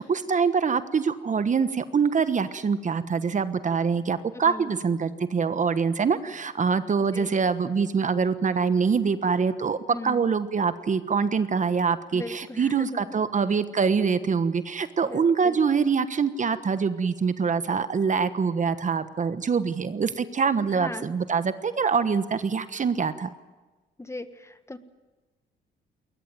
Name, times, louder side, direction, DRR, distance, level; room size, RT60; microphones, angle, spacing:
voice 1, 0.0-23.3, right 5 dB, 40° right, 12 dB, 1.3 m, -24 dB
voice 2, 4.3-4.7 7.1-7.3 9.9-10.2 12.1-13.2 15.0-15.5 20.7-21.0 24.0-24.8, left 2 dB, 15° left, 11 dB, 1.5 m, -38 dB
21.5 x 19.5 x 9.3 m, 1.2 s
cardioid pair, 90°, 20 cm